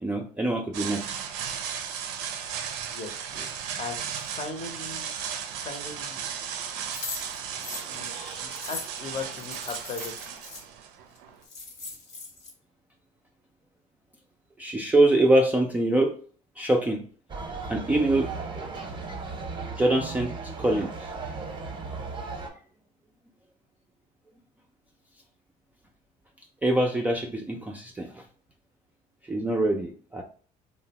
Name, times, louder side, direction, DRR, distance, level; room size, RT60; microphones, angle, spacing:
voice 1, 0.0-1.1 14.6-16.1 16.6-17.0 17.7-18.3 18.6-18.7 19.8-20.3 20.6-20.9 26.6-28.1 29.3-30.2, right 1 dB, 10° right, 1 dB, 0.3 m, -24 dB
sound 1, 0.7-11.4, right 8 dB, 80° right, 0.4 m, -35 dB
voice 2, 3.8-5.1 5.6-6.2 7.8-10.3, left 3 dB, 35° left, 5 dB, 0.7 m, -38 dB
sound 2, 6.9-10.6 11.2-11.3 11.4-12.5, left 3 dB, 60° left, 1.1 m, -39 dB
sound 3, 17.3-22.5, right 4 dB, 25° right, 0.7 m, -36 dB
2.7 x 2.1 x 2.8 m, 0.43 s
supercardioid pair, 80°, 19 cm